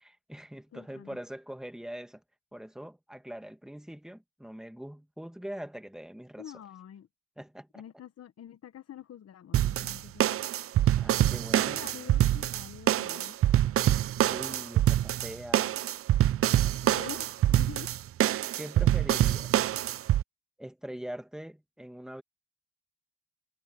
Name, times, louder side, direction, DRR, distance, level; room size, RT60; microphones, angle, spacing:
voice 1, 0.0-2.2 2.5-6.5 7.4-7.8 11.0-11.8 14.3-15.8 18.6-19.8 20.6-22.2, equal, ahead, 1.9 m, -43 dB
voice 2, 0.7-1.2 6.4-7.1 7.7-10.2 11.6-13.4 16.8-17.9, left 10 dB, 55° left, 1.2 m, -46 dB
sound 1, 9.5-20.2, right 12 dB, 50° right, 0.4 m, -25 dB
cardioid pair, 90°, 30 cm